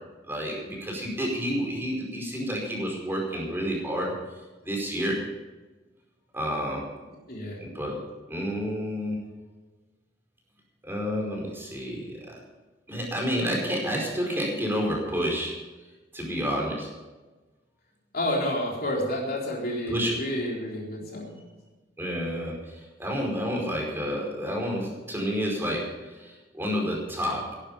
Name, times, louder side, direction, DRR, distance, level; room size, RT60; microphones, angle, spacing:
voice 1, 0.3-4.1 4.6-5.2 6.3-6.8 7.6-8.0 8.3-9.2 10.8-12.3 12.9-15.6 16.1-16.9 19.9-20.1 22.0-27.4, equal, 10° right, -1 dB, 5.1 m, -29 dB
voice 2, 7.3-7.6 18.1-21.4, left 1 dB, 50° left, -3 dB, 3.9 m, -30 dB
17.5 x 11.5 x 5.7 m, 1.2 s
head